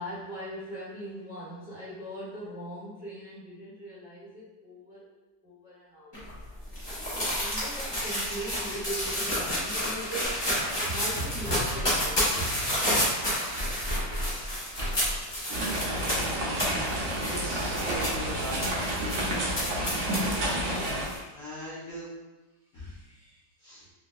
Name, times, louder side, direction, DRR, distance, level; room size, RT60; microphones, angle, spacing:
voice 1, 0.0-5.1 5.4-6.3 6.8-10.4 10.9-12.5 22.8-23.4 23.7-23.9, equal, 5° right, -12 dB, 1.2 m, -40 dB
sound 1, 6.1-21.2, equal, 35° left, 0.4 m, -31 dB
sound 2, 10.2-15.3, equal, 30° right, 0.5 m, -35 dB
sound 3, 15.5-21.1, right 1 dB, 65° right, 0.7 m, -30 dB
voice 2, 17.2-18.7 21.3-22.1 22.7-23.0 23.6-23.8, equal, 55° left, -11 dB, 1.1 m, -41 dB
3.3 x 3.0 x 2.3 m, 1.1 s
omnidirectional pair, 2.0 m